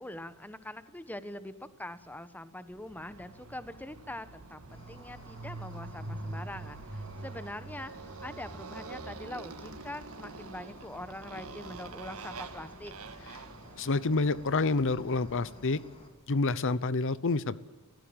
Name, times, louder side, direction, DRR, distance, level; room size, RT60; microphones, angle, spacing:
voice 1, 0.0-12.9, left 1 dB, 10° left, 12 dB, 1.2 m, -43 dB
sound 1, 2.7-15.6, equal, 25° right, 5.6 m, -57 dB
Motorcycle, 2.9-15.7, right 3 dB, 80° right, 1.7 m, -45 dB
Cricket, 4.7-16.1, left 1 dB, 25° left, 3.9 m, -55 dB
voice 2, 13.8-15.8 16.3-17.6, left 3 dB, 60° left, 17 dB, 0.8 m, -28 dB
30.0 x 16.0 x 8.9 m, 1.2 s
head